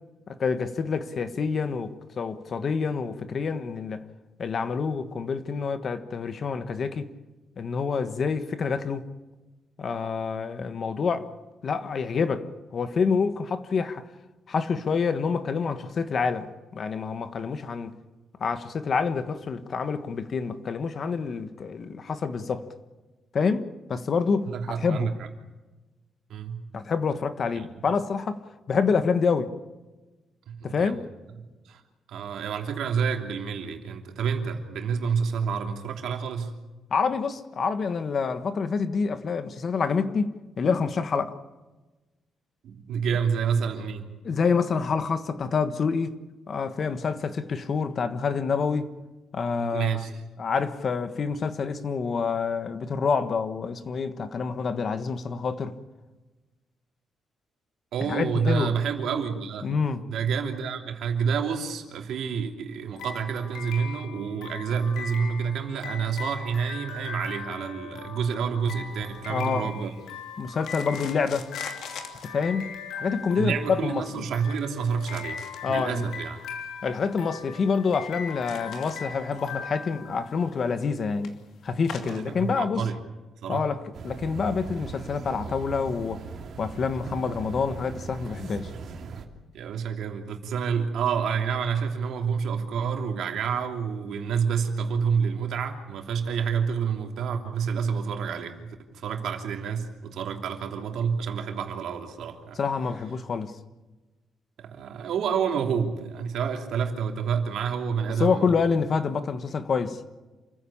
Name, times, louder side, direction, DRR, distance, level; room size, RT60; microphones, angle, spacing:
voice 1, 0.3-4.1 4.4-7.1 7.6-9.1 9.8-11.3 11.6-12.5 12.7-14.0 14.5-17.9 18.4-22.7 23.3-24.5 24.8-25.1 26.7-28.4 28.7-29.5 30.6-31.0 36.9-41.4 44.2-46.2 46.5-48.9 49.3-50.0 50.4-55.8 58.0-58.7 59.6-60.0 69.3-69.7 70.4-71.5 72.2-74.2 75.6-76.0 76.8-81.3 81.6-82.9 83.5-86.2 86.6-88.7 102.6-103.5 108.2-110.0, left 5 dB, 40° left, 1.4 m, -27 dB
voice 2, 24.5-25.3 26.3-26.6 27.5-27.7 30.5-30.9 31.4-31.8 32.1-36.5 42.6-44.1 49.6-50.1 57.9-59.7 60.1-69.9 73.3-76.4 82.1-83.0 83.4-83.7 87.0-87.1 89.5-102.6 104.6-108.6, right 6 dB, 75° right, 3.0 m, -29 dB
sound 1, 63.0-80.6, left 6 dB, 90° left, 4.8 m, -40 dB
sound 2, 68.9-82.6, left 7 dB, 70° left, 2.7 m, -47 dB
sound 3, 83.9-89.3, right 5 dB, 55° right, 2.9 m, -39 dB
28.0 x 15.5 x 8.7 m
cardioid pair, 155°, 0 cm